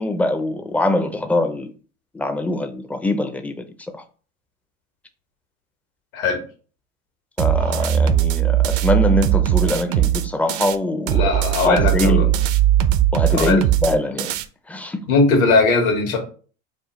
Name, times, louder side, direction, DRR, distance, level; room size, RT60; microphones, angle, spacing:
voice 1, 0.0-1.7 2.1-3.6 7.4-11.3 11.6-12.3 13.1-14.3 14.7-15.0, left 2 dB, 5° left, 0.4 m, -22 dB
sound 1, 7.4-10.8 11.1-14.4, right 12 dB, 50° right, 0.5 m, -19 dB
voice 2, 11.1-12.3 13.3-13.6 15.1-16.2, left 3 dB, 80° left, 1.4 m, -19 dB
4.7 x 2.4 x 3.1 m
hypercardioid pair, 85°, 41 cm